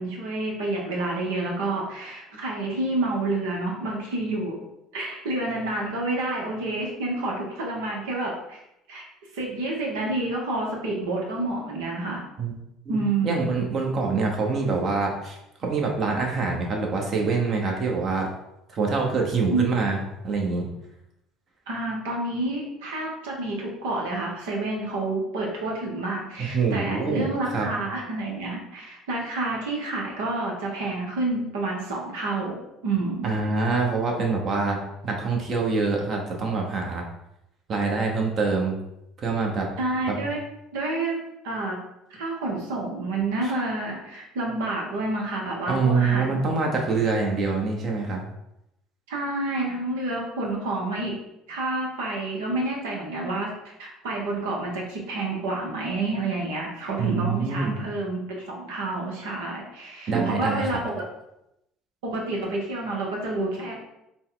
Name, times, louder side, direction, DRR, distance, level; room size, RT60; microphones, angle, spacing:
voice 1, 0.0-4.6 4.9-8.6 8.9-9.0 9.3-12.2 12.9-13.3 19.5-19.8 21.7-32.6 32.8-33.3 39.8-40.4 40.7-41.8 42.1-46.4 49.1-51.1 51.5-61.0 62.0-63.7, right 2 dB, 80° right, -1 dB, 1.0 m, -29 dB
voice 2, 13.2-18.3 18.7-20.0 20.2-20.7 26.4-27.7 33.2-37.1 37.7-38.8 39.2-39.7 40.1-40.2 43.4-43.5 45.7-48.2 57.0-57.7 60.1-60.7, right 4 dB, 50° right, 1 dB, 1.0 m, -25 dB
4.1 x 2.3 x 3.8 m, 0.84 s
hypercardioid pair, 65°, 0 cm